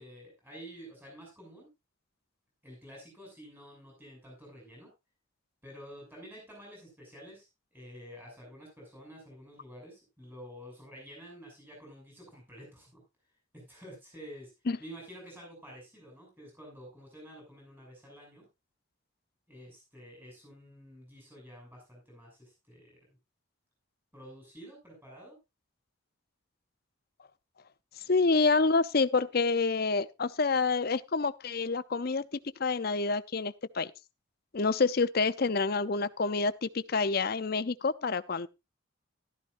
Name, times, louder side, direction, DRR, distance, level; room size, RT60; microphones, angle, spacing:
voice 1, 0.0-1.7 2.6-4.9 5.6-13.0 13.5-14.5 14.8-18.5 19.5-23.2 24.1-25.4, equal, 10° right, 7.0 m, -50 dB
voice 2, 28.1-33.9 34.5-38.5, left 4 dB, 50° left, 0.6 m, -28 dB
14.0 x 13.0 x 2.6 m
head